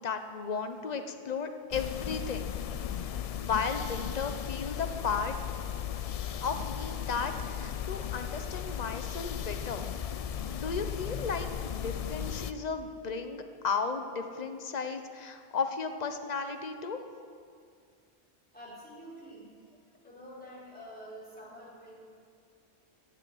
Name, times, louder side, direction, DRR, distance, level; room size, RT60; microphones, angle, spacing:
voice 1, 0.0-2.6 3.3-5.4 6.4-9.9 10.5-17.0, left 5 dB, 40° left, 7 dB, 0.9 m, -34 dB
sound 1, 1.7-12.5, left 9 dB, 60° left, 0.3 m, -36 dB
voice 2, 18.5-19.5 20.0-22.0, equal, 10° left, -7 dB, 4.2 m, -47 dB
16.5 x 6.8 x 7.8 m, 2.2 s
omnidirectional pair, 1.1 m